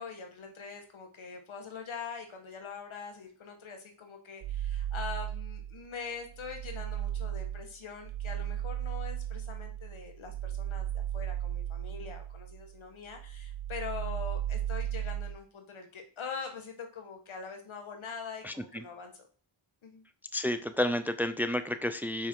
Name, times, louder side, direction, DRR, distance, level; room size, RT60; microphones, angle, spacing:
voice 1, 0.0-19.3 19.8-20.0, left 5 dB, 75° left, 4 dB, 1.9 m, -43 dB
sound 1, 4.4-5.9 6.3-12.8 13.1-15.4, right 11 dB, 60° right, 0.6 m, -36 dB
voice 2, 18.4-18.8 20.3-22.3, left 1 dB, 5° right, 10 dB, 0.6 m, -31 dB
7.0 x 5.7 x 4.7 m, 0.41 s
cardioid pair, 80°, 48 cm